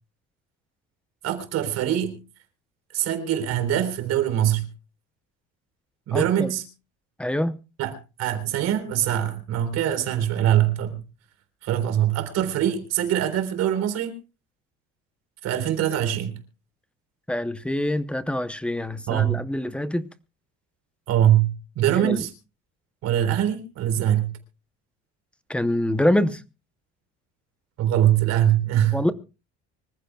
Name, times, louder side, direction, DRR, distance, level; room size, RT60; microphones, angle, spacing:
voice 1, 1.2-2.2 2.9-4.7 6.1-6.6 7.8-7.9 8.2-11.0 11.6-14.1 15.4-16.4 19.1-19.4 21.1-22.3 23.0-24.3 27.8-29.0, right 11 dB, 55° right, 3.8 m, -23 dB
voice 2, 6.1-6.5 7.2-7.6 17.3-20.1 22.0-22.2 25.5-26.4 28.9-29.1, left 1 dB, 5° left, 0.7 m, -25 dB
25.0 x 15.0 x 2.3 m
cardioid pair, 155°, 30 cm